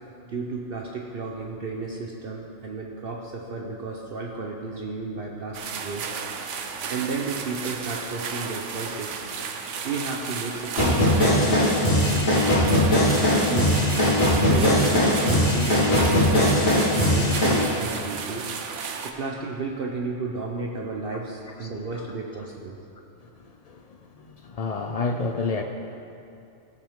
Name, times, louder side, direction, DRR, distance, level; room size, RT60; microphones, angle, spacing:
voice 1, 0.3-6.1 6.9-9.2 9.8-13.8 14.5-18.4 19.0-22.8, right 3 dB, 55° right, -1 dB, 0.9 m, -33 dB
sound 1, 5.5-19.1, right 6 dB, 75° right, 1.0 m, -33 dB
sound 2, 10.8-17.6, left 1 dB, 60° left, 2.3 m, -20 dB
voice 2, 24.4-25.6, left 3 dB, 80° left, 4 dB, 0.3 m, -28 dB
17.5 x 6.1 x 3.6 m, 2.7 s
omnidirectional pair, 1.3 m